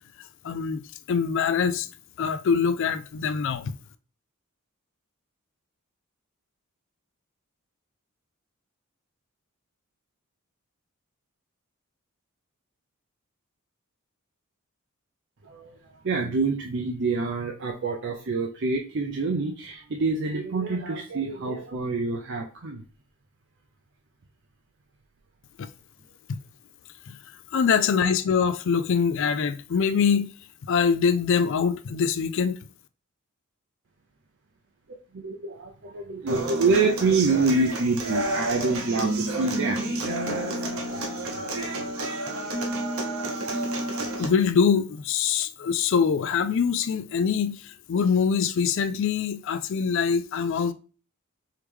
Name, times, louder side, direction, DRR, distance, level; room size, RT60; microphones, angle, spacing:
voice 1, 0.4-0.8 1.1-1.9 2.2-3.7 25.6-25.7 27.1-27.2 27.5-30.3 30.7-32.6 44.2-50.7, left 6 dB, 55° left, 0.3 m, -24 dB
voice 2, 15.4-15.8 16.0-22.8 35.1-41.9, right 3 dB, 55° right, 0.5 m, -27 dB
Human voice / Acoustic guitar, 36.3-44.3, right 2 dB, 70° right, 1.0 m, -30 dB
4.7 x 3.2 x 3.4 m
head